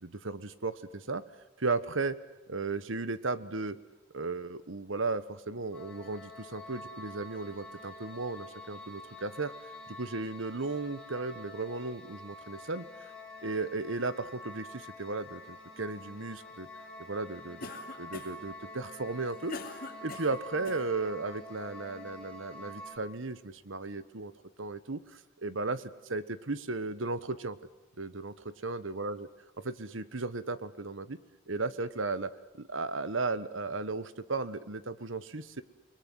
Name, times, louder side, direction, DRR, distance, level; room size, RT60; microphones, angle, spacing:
voice 1, 0.0-1.2 1.6-2.2 2.5-3.8 4.1-9.5 9.9-13.1 13.4-16.7 17.0-17.7 18.0-24.3 24.6-27.6 28.0-29.3 29.6-31.2 31.5-35.6, right 3 dB, 80° right, 14 dB, 1.3 m, -35 dB
sound 1, 5.7-23.0, left 1 dB, 5° left, 5.8 m, -47 dB
Cough, 17.6-18.5 19.1-20.9, left 3 dB, 45° left, 2.9 m, -43 dB
29.5 x 21.0 x 9.6 m, 0.93 s
head